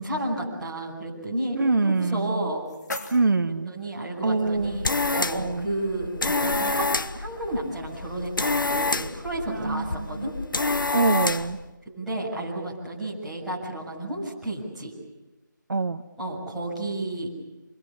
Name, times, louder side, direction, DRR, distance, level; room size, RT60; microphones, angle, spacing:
voice 1, 0.0-2.7 3.7-10.3 11.4-11.5 11.9-14.9 16.2-17.3, right 1 dB, ahead, -13 dB, 7.2 m, -32 dB
voice 2, 1.5-2.5 3.1-3.7 4.2-4.8 5.3-5.7 9.5-10.3 10.9-11.6 15.7-16.0, right 3 dB, 75° right, 9 dB, 1.4 m, -25 dB
sound 1, 2.1-4.1, left 2 dB, 65° left, 3.4 m, -40 dB
sound 2, 4.5-11.6, left 3 dB, 90° left, 1.3 m, -28 dB
29.0 x 24.0 x 7.2 m, 1.1 s
figure-of-eight pair, 170°, 11 cm